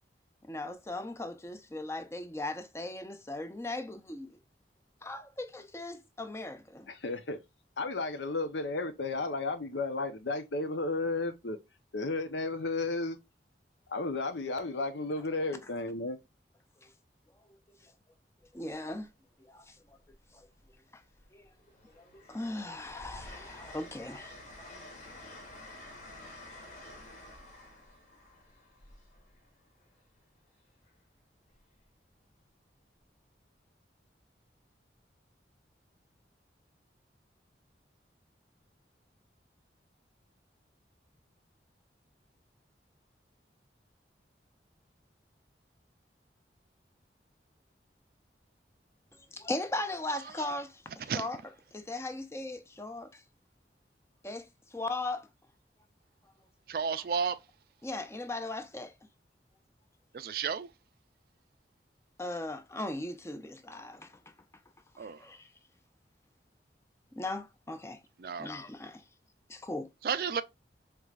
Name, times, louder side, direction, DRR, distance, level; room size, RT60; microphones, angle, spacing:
voice 1, 0.4-4.4 5.0-6.9 16.8-16.9 17.8-17.9 18.5-19.1 19.4-20.0 20.3-20.5 20.9-21.0 21.3-21.5 22.0-24.7 49.3-51.4 51.7-53.2 54.2-55.3 57.8-58.9 62.2-64.2 65.0-65.5 67.2-68.0 68.4-69.0 69.5-69.9, left 2 dB, 15° left, 0.5 m, -38 dB
voice 2, 6.9-7.4 7.8-11.6 11.9-13.2 13.9-16.2, left 3 dB, 90° left, 0.8 m, -33 dB
Train, 18.4-18.7 20.0-20.8 21.2-29.9 31.5-31.8, left 1 dB, 45° left, 1.3 m, -50 dB
voice 3, 56.7-57.4 60.1-60.7 65.0-65.2 68.2-68.5 70.0-70.4, right 6 dB, 55° right, 0.3 m, -32 dB
4.6 x 3.1 x 2.4 m
head